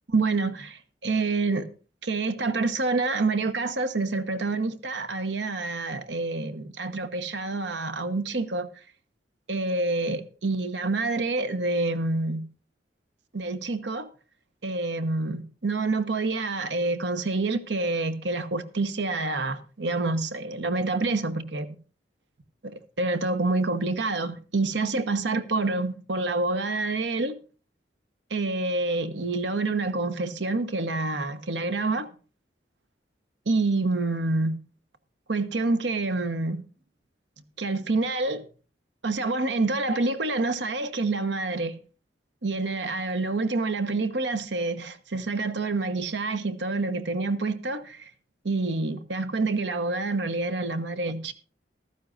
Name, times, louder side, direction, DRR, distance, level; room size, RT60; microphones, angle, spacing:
voice 1, 0.1-1.7 2.0-8.7 9.5-12.5 13.3-14.1 14.6-21.7 22.6-27.4 28.3-32.1 33.5-34.6 35.3-36.6 37.6-38.4 39.0-41.8 42.4-48.1 48.4-51.3, right 3 dB, 75° right, 1.0 m, -27 dB
15.0 x 13.0 x 2.5 m
head